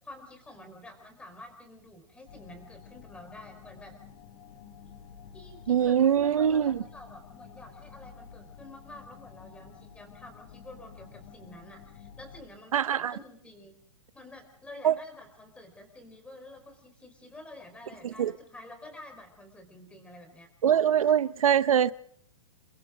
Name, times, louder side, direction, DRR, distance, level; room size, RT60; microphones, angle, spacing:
voice 1, 0.0-4.0 4.8-4.9 5.3-13.7 14.1-20.5, left 1 dB, 5° left, 4.7 m, -49 dB
sound 1, 2.3-12.4, left 7 dB, 55° left, 4.8 m, -50 dB
voice 2, 5.7-6.8 12.7-13.2 14.8-15.0 18.0-18.3 20.6-21.9, right 9 dB, 85° right, 0.8 m, -23 dB
29.5 x 22.5 x 3.9 m
hypercardioid pair, 145°, 17 cm